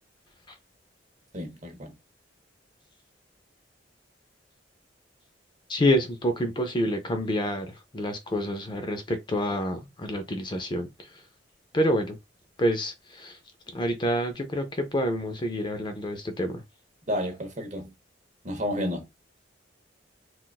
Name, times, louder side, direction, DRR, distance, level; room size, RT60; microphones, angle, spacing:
voice 1, 1.3-1.9 17.1-17.9 18.4-19.0, equal, 40° right, 1.0 m, -31 dB
voice 2, 5.7-7.7 7.9-10.9 11.7-12.2 12.6-12.9 13.2-13.3 13.7-16.5, equal, 25° left, 0.5 m, -27 dB
3.9 x 2.4 x 2.3 m
head